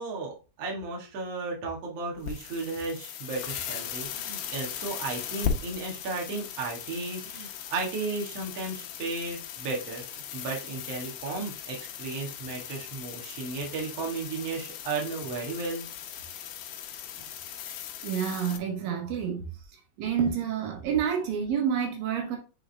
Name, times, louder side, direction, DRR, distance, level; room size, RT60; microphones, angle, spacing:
voice 1, 0.0-15.8, right 3 dB, 50° right, 2.3 m, -34 dB
sound 1, 2.2-18.6, left 8 dB, 75° left, 2.3 m, -38 dB
voice 2, 18.0-19.5 20.0-22.4, right 8 dB, 80° right, 2.9 m, -28 dB
7.9 x 3.7 x 3.4 m
omnidirectional pair, 4.0 m